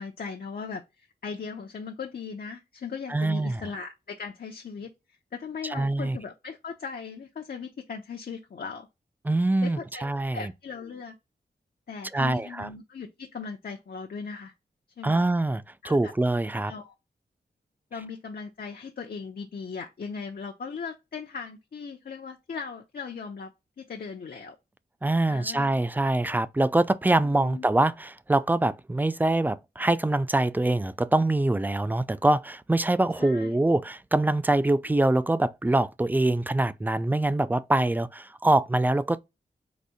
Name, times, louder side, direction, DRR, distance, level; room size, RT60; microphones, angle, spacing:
voice 1, 0.0-4.9 5.3-8.9 9.6-11.1 11.9-14.5 15.0-15.2 15.8-16.1 16.6-16.9 17.9-23.5 23.8-24.6 25.3-25.7 27.2-27.7 33.2-33.6, left 5 dB, 60° left, 0.7 m, -38 dB
voice 2, 3.1-3.6 5.7-6.2 9.3-10.5 12.1-12.7 15.0-16.7 25.0-39.2, right 2 dB, 10° right, 0.3 m, -24 dB
4.1 x 2.6 x 4.8 m
wide cardioid pair, 85°, 17 cm